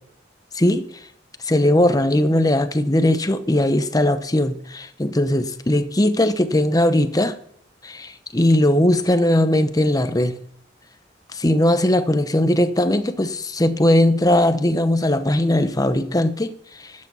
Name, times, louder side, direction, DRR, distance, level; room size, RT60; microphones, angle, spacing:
voice 1, 0.5-0.9 1.4-7.4 7.8-10.3 11.3-16.9, left 1 dB, 20° left, 10 dB, 0.8 m, -19 dB
12.0 x 8.5 x 5.6 m, 0.66 s
head